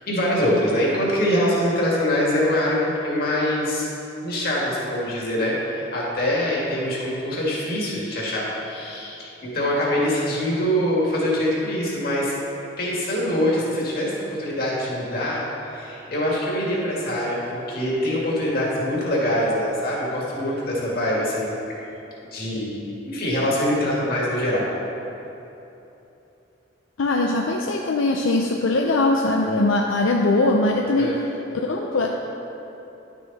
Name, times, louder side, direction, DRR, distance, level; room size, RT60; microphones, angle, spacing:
voice 1, 0.1-3.9 4.2-12.3 12.8-15.4 15.7-21.6 22.3-24.7 30.9-31.2, left 1 dB, 50° left, -5 dB, 2.0 m, -24 dB
voice 2, 27.0-31.2 31.6-32.1, left 2 dB, 80° left, 0 dB, 0.6 m, -21 dB
11.0 x 6.4 x 4.1 m, 3.0 s
head